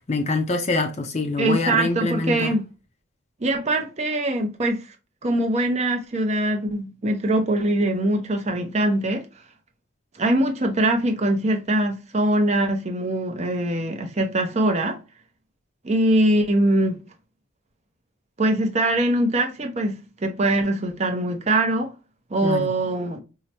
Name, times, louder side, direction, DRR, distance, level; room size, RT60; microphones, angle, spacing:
voice 1, 0.1-2.5 22.4-22.7, left 3 dB, 30° left, 0.5 m, -25 dB
voice 2, 1.4-2.6 3.4-4.8 5.2-9.2 10.1-15.0 15.8-17.0 18.4-21.9 22.3-23.2, right 1 dB, 30° right, 0.6 m, -22 dB
4.7 x 2.1 x 2.8 m
head